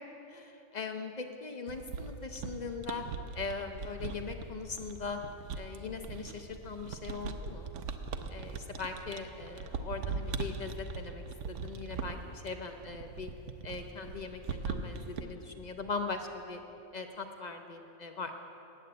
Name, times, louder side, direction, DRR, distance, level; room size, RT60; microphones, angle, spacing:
voice 1, 0.3-3.0 3.3-5.2 5.5-7.7 8.3-13.3 13.6-16.6 16.9-18.4, left 4 dB, 55° left, 6 dB, 0.5 m, -40 dB
sound 1, 1.7-15.2, right 5 dB, 70° right, 0.9 m, -40 dB
8.9 x 7.6 x 9.0 m, 3.0 s
omnidirectional pair, 1.4 m